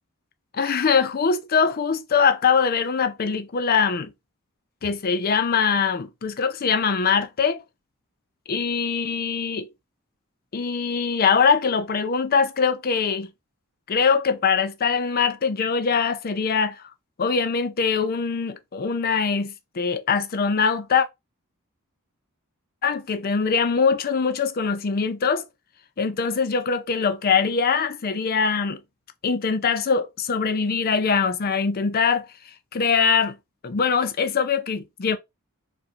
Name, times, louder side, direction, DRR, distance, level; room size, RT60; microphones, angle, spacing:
voice 1, 0.5-4.1 4.8-7.6 8.5-9.7 10.5-13.3 13.9-16.8 17.2-21.1 22.8-25.5 26.0-28.8 29.2-32.3 32.7-33.4 33.6-35.2, left 5 dB, 45° left, 0.5 m, -22 dB
4.3 x 2.6 x 2.4 m
head